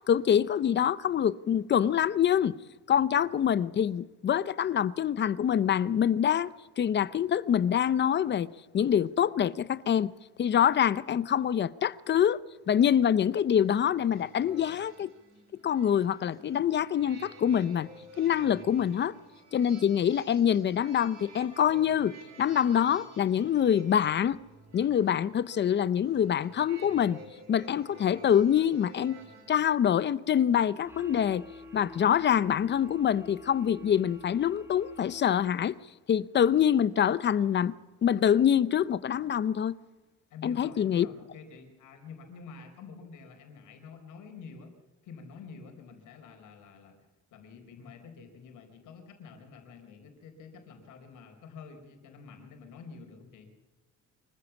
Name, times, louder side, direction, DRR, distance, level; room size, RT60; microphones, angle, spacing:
voice 1, 0.1-2.5 2.9-6.5 6.8-10.1 10.4-12.4 12.7-15.1 15.6-17.9 18.2-19.1 19.5-24.4 24.7-27.2 27.5-29.2 29.5-31.4 31.7-35.8 36.1-37.7 38.0-39.8 40.4-41.1, left 9 dB, 35° left, 0.6 m, -25 dB
sound 1, 13.0-29.5, right 2 dB, 65° right, 6.4 m, -53 dB
sound 2, 30.8-35.7, left 2 dB, 10° right, 2.5 m, -48 dB
voice 2, 40.3-44.7 45.0-47.0 47.3-53.5, left 5 dB, 80° left, 4.5 m, -48 dB
25.0 x 15.0 x 7.2 m
cardioid pair, 155°, 30 cm